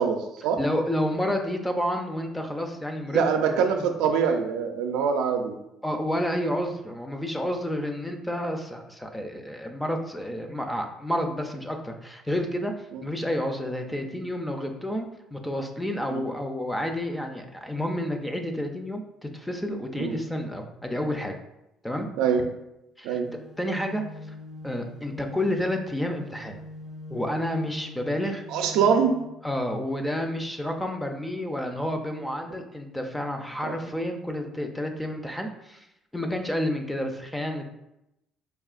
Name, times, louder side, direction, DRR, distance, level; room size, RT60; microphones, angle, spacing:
voice 1, 0.0-0.6 3.1-5.6 12.9-13.0 16.1-16.2 20.0-20.1 22.2-22.4 23.0-23.3 28.5-29.1 33.6-33.8, right 6 dB, 85° right, 4 dB, 0.4 m, -24 dB
voice 2, 0.6-3.9 5.8-21.4 21.8-22.1 23.0-23.2 23.6-24.4 24.6-26.6 27.1-28.5 29.4-35.9 36.1-37.7, left 1 dB, 5° left, 4 dB, 0.5 m, -30 dB
sound 1, 23.3-29.2, left 2 dB, 40° left, 0.9 m, -43 dB
4.5 x 2.7 x 2.4 m, 0.86 s
cardioid pair, 105°, 0 cm